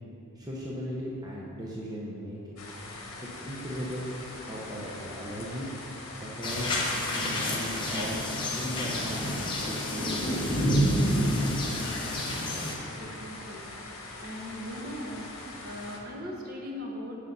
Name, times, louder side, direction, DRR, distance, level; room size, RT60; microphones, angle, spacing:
voice 1, 0.3-2.4 3.2-5.7 6.1-8.2 8.5-11.4, equal, 15° right, -5 dB, 0.7 m, -37 dB
sound 1, 2.6-16.0, left 2 dB, 70° left, 1.2 m, -43 dB
sound 2, 6.4-12.7, equal, 20° left, 0.8 m, -29 dB
voice 2, 13.0-13.6 14.1-15.3 15.6-17.3, left 1 dB, 40° right, -1 dB, 0.9 m, -39 dB
8.0 x 4.9 x 5.4 m, 2.8 s
head